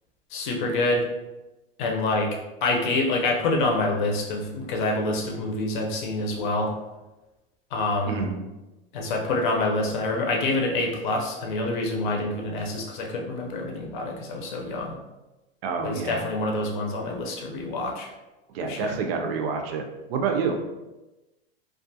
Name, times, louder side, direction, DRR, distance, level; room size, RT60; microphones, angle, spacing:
voice 1, 0.3-1.0 1.8-6.7 7.7-8.2 8.9-15.0 15.8-18.1 18.6-19.0, left 2 dB, 55° left, 1 dB, 0.6 m, -26 dB
voice 2, 15.6-16.2 18.5-19.8 20.1-20.6, right 5 dB, 70° right, 4 dB, 0.5 m, -27 dB
2.4 x 2.2 x 2.7 m, 1.0 s
supercardioid pair, 170°, 30 cm